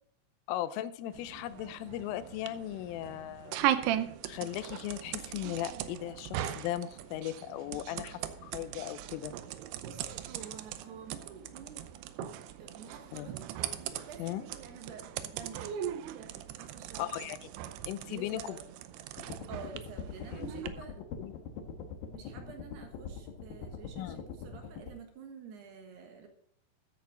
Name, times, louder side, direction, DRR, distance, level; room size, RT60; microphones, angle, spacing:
voice 1, 0.5-3.6 4.2-9.3 13.1-13.3 14.2-14.4 17.0-17.5 17.9-18.6 20.4-20.5 21.2-21.4 24.0-24.2, left 13 dB, 90° left, 13 dB, 3.3 m, -37 dB
sound 1, 1.1-20.7, right 11 dB, 85° right, 2.3 m, -39 dB
voice 2, 9.9-11.8 12.6-13.5 13.8-15.8 16.6-17.2 18.1-18.6 19.5-21.0 22.1-26.3, right 5 dB, 65° right, 4 dB, 3.0 m, -49 dB
sound 2, 19.2-24.9, left 6 dB, 70° left, 2.2 m, -43 dB
14.0 x 9.5 x 3.8 m, 0.65 s
omnidirectional pair, 5.6 m